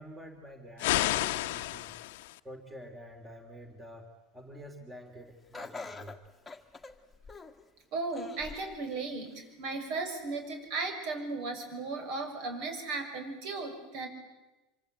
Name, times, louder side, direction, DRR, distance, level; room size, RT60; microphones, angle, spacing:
voice 1, 0.0-1.9 2.4-4.1 4.3-6.2, equal, 10° right, 5 dB, 2.6 m, -48 dB
sound 1, 0.8-2.4, left 17 dB, 85° left, 1.0 m, -30 dB
Laughter, 5.5-7.7 8.1-8.8 9.3-9.4 10.3-10.4, left 3 dB, 10° left, 1.7 m, -45 dB
voice 2, 7.9-14.1, right 3 dB, 55° right, 6 dB, 6.5 m, -36 dB
26.0 x 24.5 x 9.1 m, 1.0 s
supercardioid pair, 150°, 0 cm